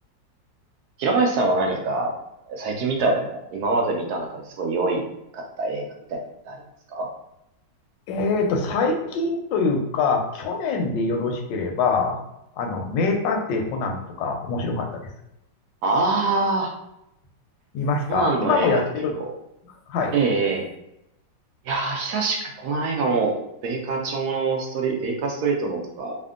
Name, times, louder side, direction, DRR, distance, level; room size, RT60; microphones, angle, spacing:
voice 1, 1.0-2.1 2.5-5.0 5.3-5.8 6.1-6.2 6.5-6.6 6.9-7.1 15.8-16.7 18.1-18.8 20.1-20.7 21.7-23.3 23.6-26.2, right 3 dB, 70° right, 1 dB, 1.0 m, -24 dB
voice 2, 8.1-12.2 12.6-15.0 17.7-19.2 19.9-20.1, left 4 dB, 85° left, 3 dB, 1.3 m, -24 dB
3.4 x 2.1 x 2.4 m, 0.84 s
omnidirectional pair, 2.0 m